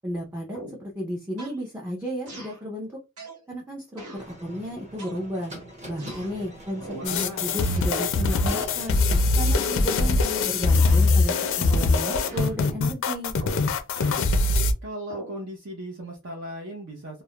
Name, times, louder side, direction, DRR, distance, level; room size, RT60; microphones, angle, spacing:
voice 1, 0.0-3.0 3.5-5.5 5.9-9.0 9.3-13.3, equal, 10° right, -3 dB, 0.5 m, -33 dB
sound 1, 0.5-0.9 1.4-1.6 2.3-2.6 3.2-3.4 4.0-4.3 5.0-5.5 6.0-6.3 6.8-7.1 7.5-8.6 9.4-10.3 10.7-11.1 11.7-12.0 12.3-12.6 13.4-14.3 15.1-15.4, right 1 dB, 80° right, 1.2 m, -42 dB
sound 2, 4.2-11.1, equal, 30° right, 1.0 m, -44 dB
voice 2, 6.9-7.5 14.8-17.2, right 1 dB, 55° right, 1 dB, 0.6 m, -37 dB
sound 3, 7.0-14.7, left 3 dB, 60° left, 0.4 m, -22 dB
2.3 x 2.0 x 2.8 m, 0.26 s
head